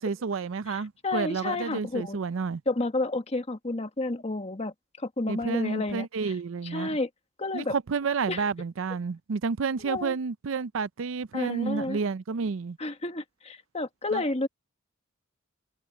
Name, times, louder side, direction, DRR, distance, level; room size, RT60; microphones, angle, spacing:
voice 1, 0.0-2.6 5.3-7.0 7.5-12.8 14.1-14.2, right 5 dB, 80° right, 0.5 m, -30 dB
voice 2, 0.7-2.2 2.7-6.1 6.6-7.1 7.4-7.8 8.3-8.4 9.8-10.2 11.3-12.0 12.8-14.5, left 2 dB, 30° left, 1.5 m, -31 dB
head